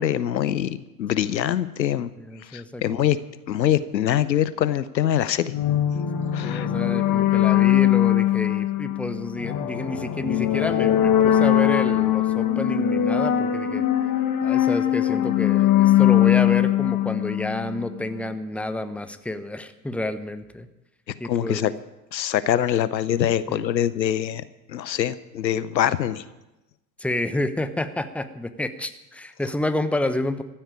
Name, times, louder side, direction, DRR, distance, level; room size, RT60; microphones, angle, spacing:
voice 1, 0.0-2.1 2.5-3.2 3.5-5.5 6.3-6.7 21.2-21.7 22.1-24.4 24.7-26.2, left 11 dB, 90° left, 16 dB, 0.8 m, -24 dB
voice 2, 2.2-3.1 6.4-13.8 14.4-20.7 21.2-21.8 23.5-23.6 27.0-30.4, left 1 dB, 5° left, 10 dB, 1.0 m, -29 dB
sound 1, 5.5-18.0, left 12 dB, 40° left, 1.7 m, -21 dB
14.5 x 8.9 x 8.6 m, 1.0 s
hypercardioid pair, 75°, 50 cm